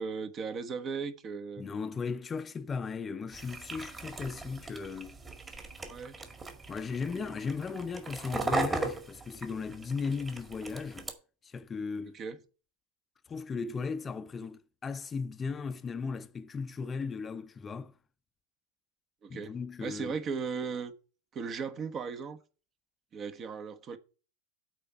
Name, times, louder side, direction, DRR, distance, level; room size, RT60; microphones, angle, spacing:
voice 1, 0.0-1.7 5.9-6.2 12.1-12.4 19.2-19.5 19.8-20.9 21.3-22.4 23.1-24.0, right 5 dB, 35° right, 1.2 m, -37 dB
voice 2, 1.6-5.2 6.7-11.1 11.4-12.2 13.3-17.9 19.3-20.2, left 5 dB, 25° left, 0.7 m, -36 dB
sound 1, 3.3-11.1, right 2 dB, 20° right, 1.9 m, -38 dB
8.5 x 4.5 x 7.1 m
hypercardioid pair, 90°, 0 cm